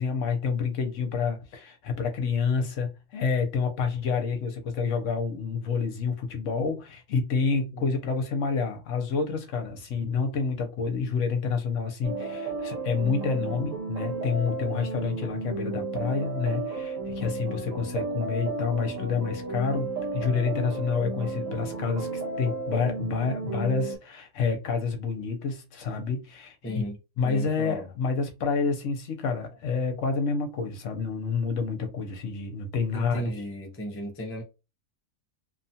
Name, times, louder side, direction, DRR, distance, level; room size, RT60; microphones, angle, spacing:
voice 1, 0.0-26.8 27.2-33.3, left 5 dB, 70° left, 1.0 m, -28 dB
sound 1, 12.0-24.0, right 3 dB, 70° right, 1.2 m, -33 dB
voice 2, 26.6-27.9 32.9-34.4, right 1 dB, 20° left, 0.4 m, -35 dB
2.7 x 2.3 x 2.7 m
omnidirectional pair, 1.4 m